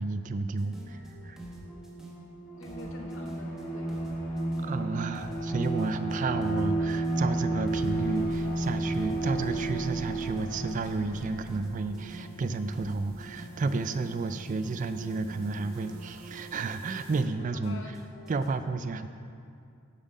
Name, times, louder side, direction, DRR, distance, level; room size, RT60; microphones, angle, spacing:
voice 1, 0.0-1.4 4.6-17.8 18.3-19.1, right 3 dB, 35° right, 10 dB, 0.3 m, -32 dB
sound 1, 0.6-18.5, right 1 dB, 5° right, 1.0 m, -47 dB
Bowed string instrument, 2.5-11.0, right 2 dB, 30° left, 1.7 m, -31 dB
voice 2, 2.6-4.0 17.5-18.2, left 2 dB, 65° left, 3 dB, 1.0 m, -46 dB
sound 2, 7.7-17.2, equal, 75° right, 1.1 m, -48 dB
8.1 x 7.4 x 5.3 m, 2.4 s
head